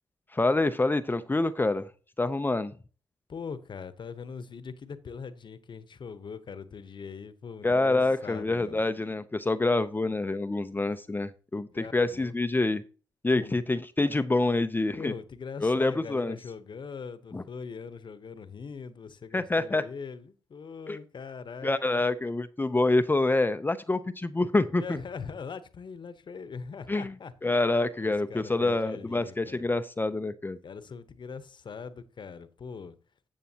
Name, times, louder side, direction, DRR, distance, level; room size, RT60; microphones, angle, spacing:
voice 1, 0.3-1.9 2.2-2.7 7.6-12.8 13.2-15.1 15.6-16.4 17.3-17.4 19.3-19.8 20.9-21.0 21.6-25.0 26.9-27.1 27.4-30.6, left 2 dB, 20° left, 0.6 m, -26 dB
voice 2, 3.3-8.8 11.7-12.3 13.3-13.6 14.9-22.0 24.8-29.7 30.6-33.0, left 5 dB, 55° left, 1.0 m, -41 dB
12.5 x 7.3 x 2.9 m
supercardioid pair, 50°, 10 cm